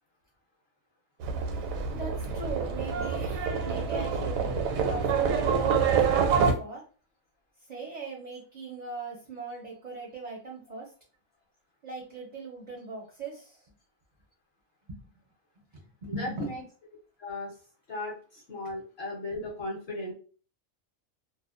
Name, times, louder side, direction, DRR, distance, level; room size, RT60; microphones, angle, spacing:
Livestock farm animals working animals, 1.2-6.5, right 6 dB, 80° right, 1.0 m, -27 dB
voice 1, 1.9-6.8 7.7-10.9 11.8-13.6 14.9-15.2 16.0-16.5, right 3 dB, 50° right, -2 dB, 0.5 m, -40 dB
voice 2, 16.1-16.6 17.2-17.5 17.9-20.1, left 2 dB, 55° left, -1 dB, 0.9 m, -36 dB
2.4 x 2.1 x 2.4 m, 0.38 s
omnidirectional pair, 1.4 m